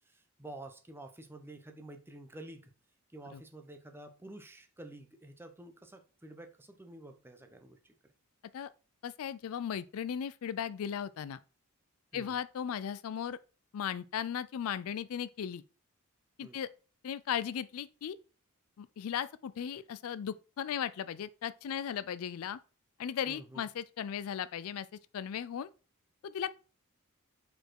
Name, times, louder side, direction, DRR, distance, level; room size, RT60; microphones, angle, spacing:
voice 1, 0.1-2.7 3.1-7.9 12.1-12.4 16.4-16.6 23.3-23.6, right 1 dB, 10° right, 0.7 m, -49 dB
voice 2, 9.0-11.4 12.1-13.4 13.7-15.6 16.4-16.7 17.0-18.2 18.8-22.6 23.0-24.9 25.1-25.7 26.2-26.5, left 8 dB, 70° left, 0.4 m, -36 dB
5.1 x 4.4 x 4.5 m
head